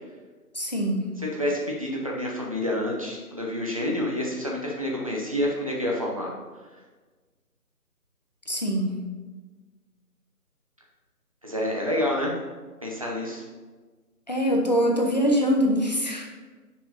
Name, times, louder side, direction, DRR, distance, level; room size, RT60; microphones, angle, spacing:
voice 1, 0.5-1.1 8.5-9.0 14.3-16.3, equal, 25° left, 0 dB, 0.9 m, -23 dB
voice 2, 1.3-6.3 11.4-12.3 12.8-13.4, left 1 dB, 20° right, -2 dB, 0.9 m, -28 dB
9.6 x 5.9 x 4.1 m, 1.4 s
figure-of-eight pair, 165°, 47 cm